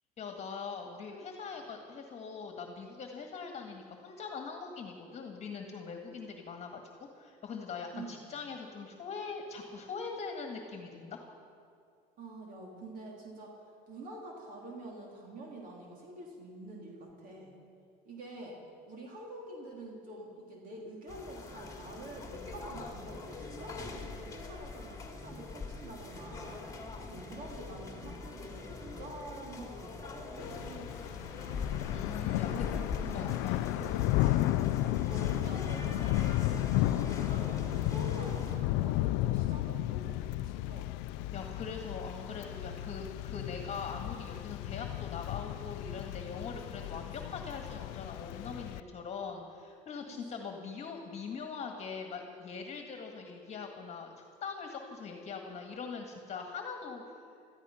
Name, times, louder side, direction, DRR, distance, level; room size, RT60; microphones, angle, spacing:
voice 1, 0.2-11.2 31.8-32.7 33.1-33.7 41.3-57.0, left 5 dB, 40° left, 3 dB, 1.8 m, -42 dB
voice 2, 7.9-8.3 12.2-13.6 13.9-17.5 18.0-18.6 18.9-26.6 27.0-30.9 32.2-33.2 33.8-36.5 36.9-40.9 50.1-50.7, right 1 dB, 50° right, -1 dB, 3.2 m, -47 dB
sound 1, 21.1-38.6, left 4 dB, 20° left, 2.5 m, -42 dB
Thunder / Rain, 30.4-48.8, left 16 dB, 80° left, 0.4 m, -33 dB
16.5 x 13.5 x 5.8 m, 2.4 s
supercardioid pair, 105°, 18 cm